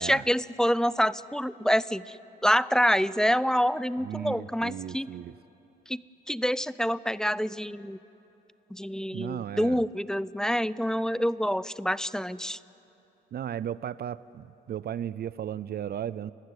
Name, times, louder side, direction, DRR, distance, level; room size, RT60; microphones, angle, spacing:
voice 1, 0.0-2.2 2.4-5.1 5.9-6.0 6.3-8.0 8.7-12.6, equal, 5° left, 18 dB, 0.5 m, -26 dB
voice 2, 4.0-5.3 9.1-9.8 13.3-16.3, right 10 dB, 55° right, 17 dB, 0.5 m, -35 dB
30.0 x 16.0 x 9.7 m, 2.9 s
cardioid pair, 90°, 20 cm